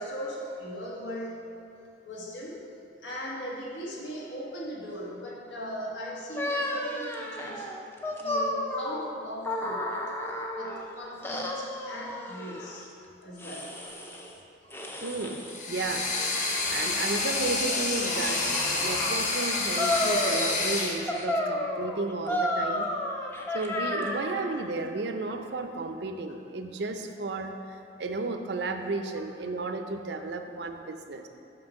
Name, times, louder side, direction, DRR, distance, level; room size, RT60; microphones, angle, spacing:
voice 1, 0.0-1.4 2.0-2.6 3.0-7.7 8.2-10.1 10.5-12.9 13.2-13.8 17.7-17.8, equal, 90° left, -3 dB, 1.4 m, -38 dB
sound 1, 6.4-10.8 11.2-12.8 13.4-14.3 14.7-15.7 16.3-19.2 19.8-20.8 21.1-24.5, left 1 dB, 10° left, 0.5 m, -32 dB
voice 2, 15.0-15.4 15.7-18.4 18.8-22.9 23.5-31.3, right 3 dB, 65° right, 6 dB, 0.5 m, -33 dB
sound 2, 15.5-21.0, left 3 dB, 40° left, 0.8 m, -28 dB
6.0 x 4.6 x 6.3 m, 2.7 s
head